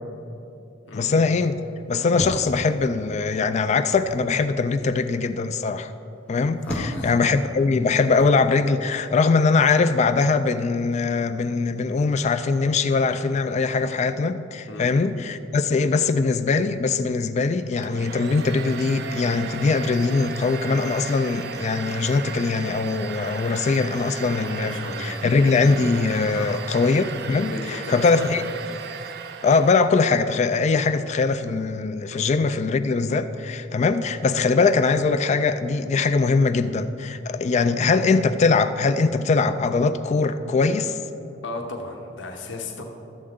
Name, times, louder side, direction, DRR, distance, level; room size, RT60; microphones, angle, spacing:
voice 1, 0.9-1.6 1.9-5.9 6.3-28.4 29.4-41.0, left 4 dB, 40° left, 10 dB, 0.3 m, -21 dB
sound 1, 2.1-3.2 3.9-4.3 6.3-7.2 8.1-8.4, equal, 5° left, 0.7 m, -34 dB
voice 2, 6.6-7.2 14.7-14.9 24.2-25.2 26.3-26.6 27.5-28.3 32.1-32.2 41.4-42.8, left 2 dB, 80° left, 2 dB, 0.9 m, -35 dB
Domestic sounds home sounds, 17.8-29.9, right 7 dB, 60° right, 0.4 m, -36 dB
12.5 x 7.6 x 3.7 m, 2.8 s
head